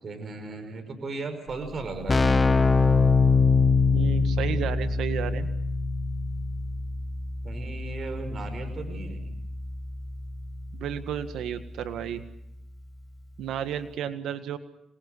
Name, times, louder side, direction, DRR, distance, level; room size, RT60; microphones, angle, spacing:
voice 1, 0.0-2.6 7.4-9.4, right 3 dB, 45° right, 8 dB, 5.4 m, -36 dB
Keyboard (musical), 1.5-1.6 1.8-12.4, left 4 dB, 25° left, 1.6 m, -25 dB
voice 2, 3.9-5.5 10.7-12.2 13.4-14.6, right 9 dB, 80° right, 9 dB, 1.8 m, -32 dB
26.5 x 21.5 x 8.1 m, 0.79 s
cardioid pair, 90°, 0 cm